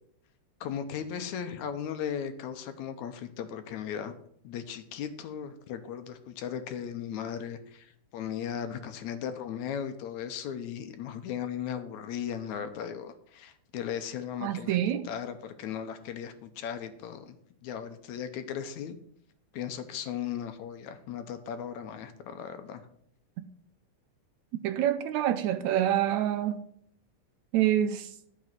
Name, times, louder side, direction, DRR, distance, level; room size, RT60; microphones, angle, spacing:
voice 1, 0.6-4.1 4.4-14.8 15.0-17.4 17.6-19.0 19.5-22.8, left 8 dB, 75° left, 2.2 m, -37 dB
voice 2, 14.4-15.1 24.5-26.6 27.5-28.1, right 11 dB, 75° right, 1.8 m, -27 dB
12.0 x 6.2 x 6.0 m
omnidirectional pair, 3.6 m